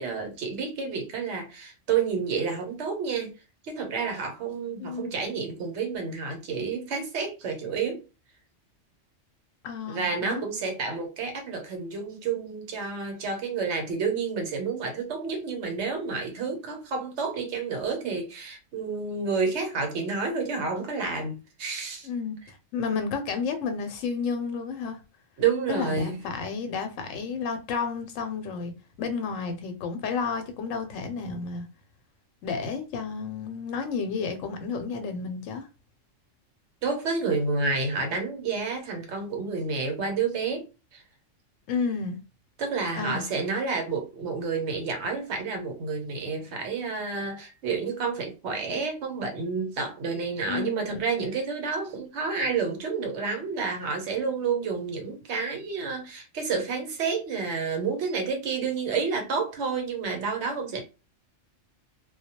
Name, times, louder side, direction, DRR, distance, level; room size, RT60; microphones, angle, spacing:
voice 1, 0.0-3.3 3.6-8.0 9.9-22.1 25.4-26.2 36.8-40.7 40.9-41.0 42.6-60.8, right 5 dB, 70° right, 1.0 m, -30 dB
voice 2, 4.8-5.1 9.6-10.4 22.0-25.0 25.7-28.7 29.0-31.7 32.4-35.7 41.7-42.2 42.9-43.2 50.5-51.0, left 5 dB, 85° left, 0.9 m, -31 dB
2.2 x 2.1 x 2.8 m
omnidirectional pair, 1.3 m